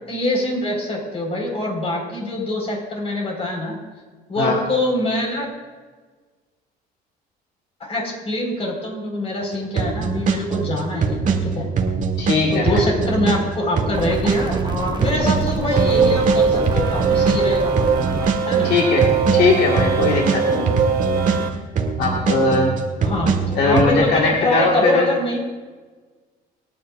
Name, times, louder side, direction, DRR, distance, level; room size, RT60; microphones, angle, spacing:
voice 1, 0.1-3.8 4.3-5.5 7.8-11.7 12.5-17.7 18.4-18.7 23.0-25.4, left 1 dB, 35° left, 0 dB, 4.7 m, -24 dB
sound 1, 9.7-21.4 21.7-23.8, right 5 dB, 50° right, 1.7 m, -22 dB
voice 2, 12.2-12.8 18.6-19.1 19.3-20.9 22.0-22.7 23.6-25.1, left 3 dB, 75° left, -1 dB, 1.9 m, -19 dB
sound 2, 13.9-18.3, right 3 dB, 25° right, 1.1 m, -29 dB
sound 3, 15.7-21.5, right 5 dB, 65° right, 1.9 m, -21 dB
28.0 x 9.8 x 2.5 m, 1.4 s
cardioid pair, 110°, 17 cm